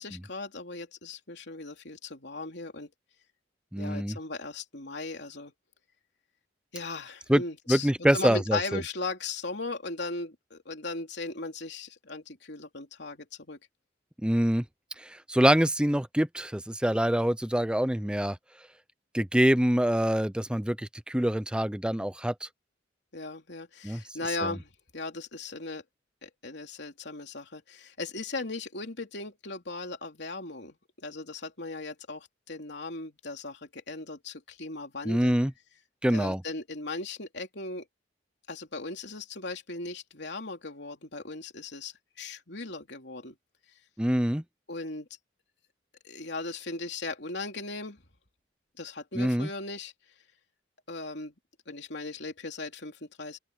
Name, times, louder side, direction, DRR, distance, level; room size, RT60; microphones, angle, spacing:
voice 1, 0.0-2.9 3.8-5.5 6.7-13.6 23.1-25.8 26.2-35.4 36.1-37.8 38.5-43.4 44.7-45.1 46.0-48.0 48.8-49.9 50.9-51.3 51.7-53.4, left 3 dB, 65° left, 3.6 m, -38 dB
voice 2, 3.7-4.2 7.3-7.4 7.7-8.8 14.2-14.6 15.0-18.4 19.1-22.5 23.8-24.0 24.4-24.6 35.0-35.5 36.0-36.4 44.0-44.4 49.1-49.5, equal, 5° right, 0.7 m, -25 dB
open air
head